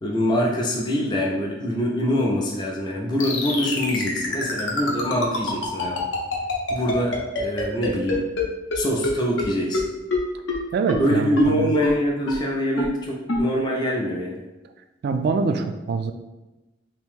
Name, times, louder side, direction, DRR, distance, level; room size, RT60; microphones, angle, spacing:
voice 1, 0.0-6.1 6.7-8.2 8.7-9.8 11.0-14.4, equal, 25° left, -2 dB, 0.4 m, -24 dB
sound 1, 3.2-8.4 8.7-8.8 9.0-9.1 9.4-9.5 9.7-9.8 10.1-10.2 10.5-10.6 10.9-11.0 11.4-11.5 11.8-11.9 12.3-12.4 12.8-12.9 13.3-13.4, left 2 dB, 70° left, 0.7 m, -24 dB
voice 2, 10.7-11.7 15.0-16.1, right 4 dB, 55° right, 7 dB, 0.3 m, -24 dB
2.9 x 2.6 x 3.6 m, 1.1 s
head